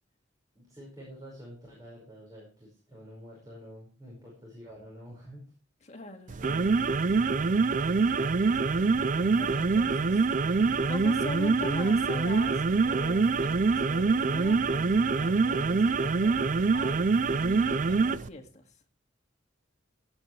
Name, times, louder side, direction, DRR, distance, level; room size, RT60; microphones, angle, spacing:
voice 1, 0.6-5.5 8.0-8.5 9.3-9.5 10.5-10.8, equal, 20° right, -4 dB, 5.3 m, -48 dB
voice 2, 5.8-6.6 8.3-8.8 9.1-16.4 16.7-18.7, left 2 dB, 35° left, 4 dB, 2.0 m, -42 dB
sound 1, 6.3-18.3, right 4 dB, 40° right, 0.5 m, -25 dB
17.5 x 9.0 x 3.3 m, 0.37 s
head